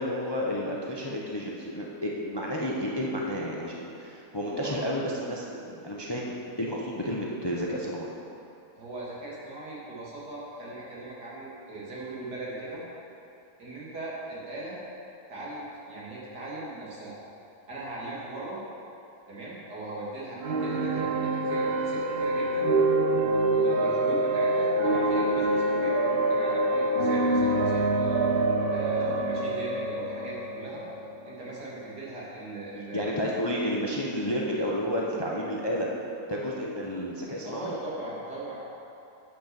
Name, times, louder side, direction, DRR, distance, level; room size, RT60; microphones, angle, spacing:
voice 1, 0.0-8.1 32.9-35.9 36.3-37.8, equal, 25° left, -3 dB, 0.5 m, -31 dB
voice 2, 4.4-4.8 8.7-12.8 13.6-14.8 15.3-17.2 17.7-18.6 19.3-22.7 23.2-28.2 28.7-30.8 31.2-33.3 37.4-38.8, right 2 dB, 85° right, -7 dB, 2.8 m, -39 dB
sound 1, 20.4-32.1, right 2 dB, 60° right, 0.6 m, -26 dB
8.5 x 5.9 x 6.9 m, 2.7 s
omnidirectional pair, 1.7 m